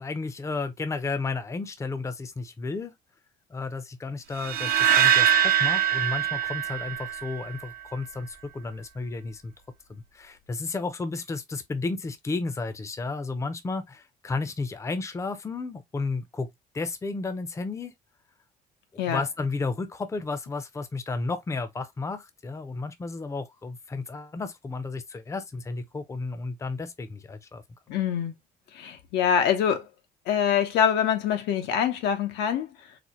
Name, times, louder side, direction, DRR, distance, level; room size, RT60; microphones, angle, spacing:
voice 1, 0.0-2.9 3.5-9.5 9.9-16.5 16.7-17.9 19.1-27.6, left 3 dB, 15° left, 0.6 m, -33 dB
sound 1, 4.4-7.6, right 9 dB, 60° right, 0.7 m, -23 dB
voice 2, 27.9-28.3 28.7-29.8 30.3-32.7, left 8 dB, 85° left, 0.9 m, -24 dB
4.1 x 2.2 x 2.9 m
cardioid pair, 110°, 17 cm